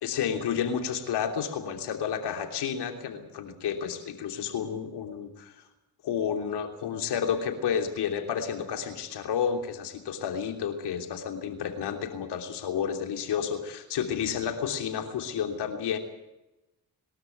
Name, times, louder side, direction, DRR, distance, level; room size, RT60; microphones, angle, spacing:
voice 1, 0.0-5.6 6.0-16.0, left 8 dB, 85° left, 5 dB, 3.2 m, -31 dB
23.0 x 13.0 x 9.3 m, 0.97 s
cardioid pair, 60°, 39 cm